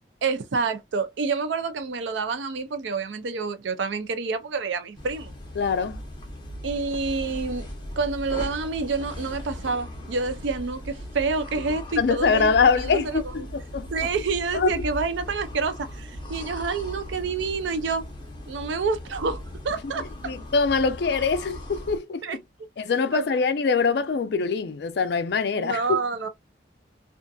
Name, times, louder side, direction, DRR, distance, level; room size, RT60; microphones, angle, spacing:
voice 1, 0.2-5.3 6.6-7.7 8.0-13.5 13.9-18.1 18.5-20.3 22.2-22.4 23.1-23.3 25.6-26.3, right 4 dB, 80° right, 0.5 m, -28 dB
sound 1, 5.0-22.0, left 1 dB, 25° left, 0.7 m, -38 dB
voice 2, 5.6-6.0 12.0-14.1 14.5-14.8 20.0-22.2 22.8-25.8, left 5 dB, 60° left, 0.4 m, -24 dB
2.6 x 2.4 x 2.2 m
head